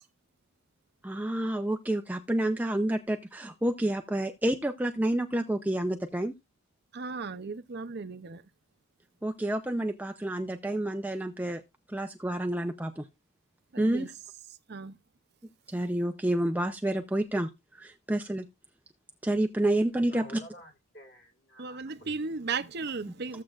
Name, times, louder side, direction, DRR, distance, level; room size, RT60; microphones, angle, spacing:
voice 1, 1.0-6.3 9.2-11.6 11.9-13.1 13.8-14.1 15.7-18.5 19.2-20.4, right 1 dB, 5° right, 0.5 m, -29 dB
voice 2, 6.9-8.4 13.7-14.1 14.7-15.0 21.6-23.4, right 4 dB, 50° right, 0.6 m, -35 dB
voice 3, 20.1-22.2, equal, 50° left, 2.8 m, -50 dB
14.5 x 7.5 x 2.4 m
head